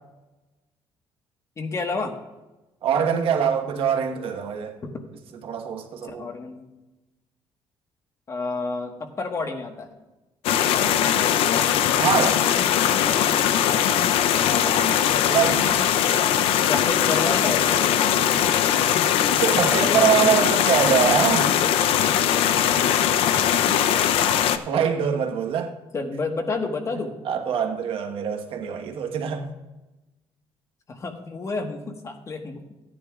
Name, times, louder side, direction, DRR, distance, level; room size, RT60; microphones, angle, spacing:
voice 1, 1.6-2.1 6.0-6.7 8.3-9.9 14.4-15.0 16.6-18.2 19.3-20.4 25.9-27.1 30.9-32.6, left 3 dB, 30° left, 4 dB, 1.4 m, -30 dB
voice 2, 2.8-4.8 5.4-6.3 12.0-12.5 15.3-15.8 19.4-21.5 24.5-25.7 27.2-29.5, right 8 dB, 70° right, 3 dB, 1.3 m, -23 dB
sound 1, 10.4-24.6, left 9 dB, 90° left, 0.6 m, -20 dB
16.5 x 10.0 x 2.4 m, 1.1 s
cardioid pair, 125°, 10 cm